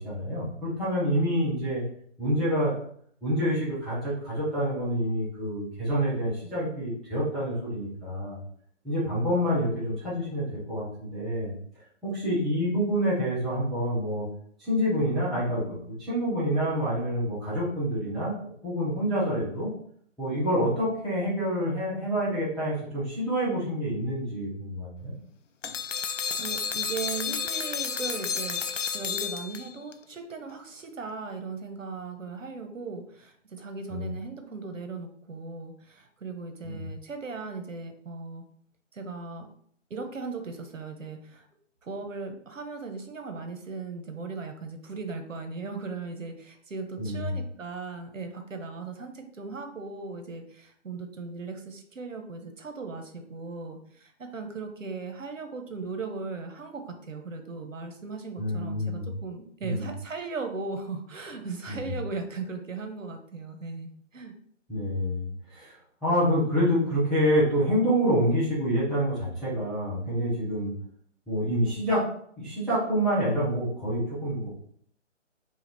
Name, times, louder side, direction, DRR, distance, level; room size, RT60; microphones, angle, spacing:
voice 1, 0.0-1.8 2.2-2.7 3.2-8.4 8.8-11.5 12.0-14.3 14.6-18.4 18.6-19.7 20.2-25.1 33.9-34.1 36.6-36.8 47.0-47.4 58.4-59.1 59.6-59.9 61.7-62.0 64.7-65.7 66.0-70.7 71.3-72.0 72.4-74.5, equal, ahead, -13 dB, 0.6 m, -27 dB
sound 1, 25.6-29.9, left 6 dB, 75° left, 0.6 m, -31 dB
voice 2, 26.3-28.6 28.9-38.4 38.9-39.5 39.9-41.5 41.8-64.3, right 4 dB, 90° right, 6 dB, 1.1 m, -38 dB
5.0 x 2.4 x 4.2 m, 0.63 s
hypercardioid pair, 180°, 37 cm